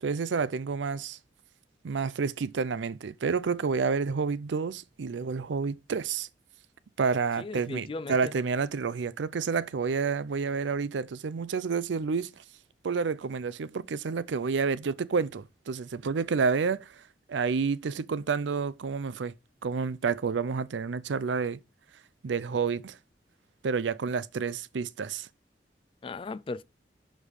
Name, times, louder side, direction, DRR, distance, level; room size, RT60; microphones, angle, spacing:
voice 1, 0.0-1.2 1.8-6.3 7.0-12.3 12.8-16.9 17.3-19.3 19.6-21.6 22.2-23.0 23.6-25.3, right 5 dB, 85° right, 0.5 m, -29 dB
voice 2, 7.4-8.3 26.0-26.6, left 3 dB, 30° left, 0.3 m, -37 dB
6.4 x 5.1 x 5.6 m
head